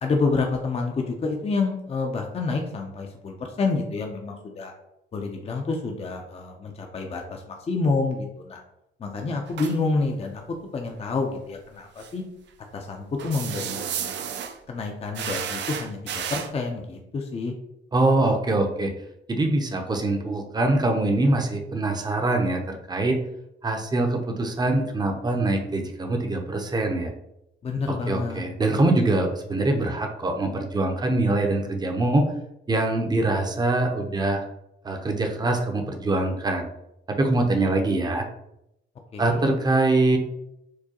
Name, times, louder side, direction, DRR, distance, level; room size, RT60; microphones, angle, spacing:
voice 1, 0.0-4.7 5.1-8.6 9.0-10.4 10.7-12.2 12.7-14.1 14.7-17.5 27.6-28.4 39.1-39.4, left 3 dB, 30° left, 3 dB, 0.5 m, -28 dB
sound 1, 9.5-9.8 12.0-12.1 13.2-14.6 15.1-16.5, right 8 dB, 65° right, 0.4 m, -32 dB
voice 2, 17.9-18.9 19.3-23.2 23.6-27.1 27.9-32.2 32.7-34.4 34.8-36.7 37.2-38.3 39.2-40.2, right 2 dB, 20° right, 3 dB, 0.6 m, -23 dB
4.6 x 2.2 x 2.8 m, 0.82 s
cardioid pair, 90°, 20 cm